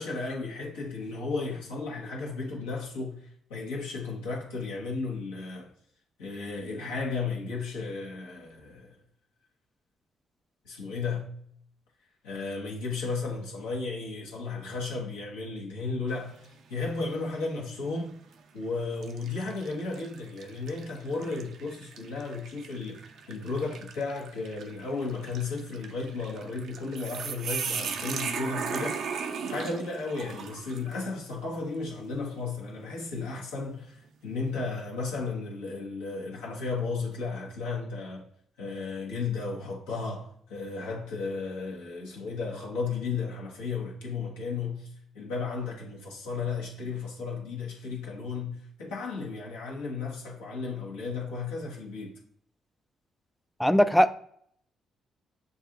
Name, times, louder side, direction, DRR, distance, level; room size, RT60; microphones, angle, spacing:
voice 1, 0.0-5.7 6.2-9.0 10.6-11.3 12.2-18.2 18.5-38.2 38.6-52.2, left 4 dB, 80° left, 1.3 m, -34 dB
sound 1, 16.1-16.6 17.1-17.2 18.2-18.4 19.0-31.0, right 6 dB, 65° right, 0.5 m, -38 dB
voice 2, 53.6-54.2, equal, 5° left, 0.4 m, -20 dB
7.0 x 2.6 x 2.9 m
hypercardioid pair, 45°, 0 cm